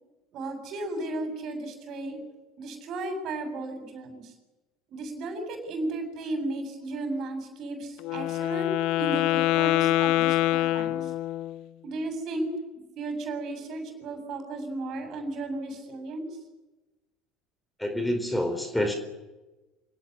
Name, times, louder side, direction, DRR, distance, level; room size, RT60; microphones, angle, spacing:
voice 1, 0.3-2.2 2.6-4.3 4.9-8.7 9.0-11.1 11.8-12.5 13.0-16.3, right 2 dB, 50° right, 6 dB, 7.6 m, -34 dB
Wind instrument woodwind instrument, 8.0-11.6, left 15 dB, 60° left, 0.8 m, -25 dB
voice 2, 17.8-19.0, left 1 dB, 5° left, 7 dB, 4.2 m, -27 dB
27.0 x 18.0 x 9.9 m, 1.1 s
figure-of-eight pair, 65°, 0 cm